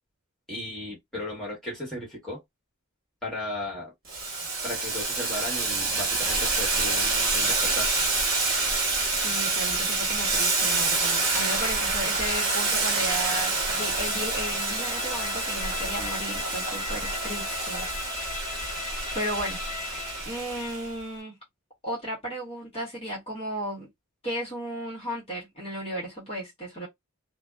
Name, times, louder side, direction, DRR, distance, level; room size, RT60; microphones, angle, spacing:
voice 1, 0.5-2.4 3.2-3.9 4.6-7.9, left 1 dB, ahead, 1.4 m, -35 dB
Boiling, 4.1-20.9, right 3 dB, 45° right, 1.4 m, -27 dB
voice 2, 9.1-17.9 19.1-19.6 19.9-21.4 21.8-23.9 24.2-26.9, equal, 25° left, 1.1 m, -35 dB
Bowed string instrument, 12.0-20.4, left 5 dB, 85° left, 0.5 m, -37 dB
2.6 x 2.2 x 2.2 m
head